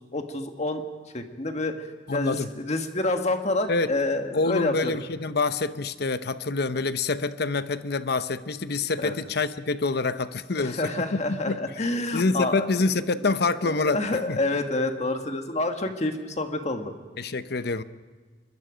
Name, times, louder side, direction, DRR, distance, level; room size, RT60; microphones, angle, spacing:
voice 1, 0.1-0.8 1.1-4.9 9.0-9.2 10.6-12.7 13.6-16.9, left 2 dB, 40° left, 1.7 m, -28 dB
voice 2, 2.1-2.5 3.7-3.9 4.3-11.6 12.1-14.4 17.2-17.8, left 3 dB, 60° left, 0.8 m, -26 dB
25.5 x 21.5 x 5.1 m
head